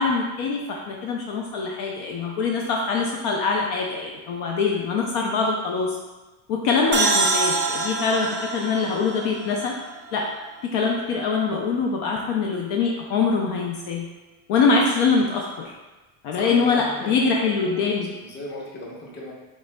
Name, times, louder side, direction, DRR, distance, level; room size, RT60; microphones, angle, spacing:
voice 1, 0.0-6.0 6.5-9.8 10.1-10.3 10.6-14.1 14.5-15.7 16.2-18.1, left 4 dB, 55° left, -1 dB, 0.6 m, -23 dB
sound 1, 6.9-10.5, right 3 dB, 30° right, 0.4 m, -25 dB
voice 2, 16.3-17.5 17.7-19.3, left 2 dB, 25° left, -3 dB, 0.8 m, -37 dB
5.0 x 3.5 x 2.2 m, 1.1 s
cardioid pair, 145°, 46 cm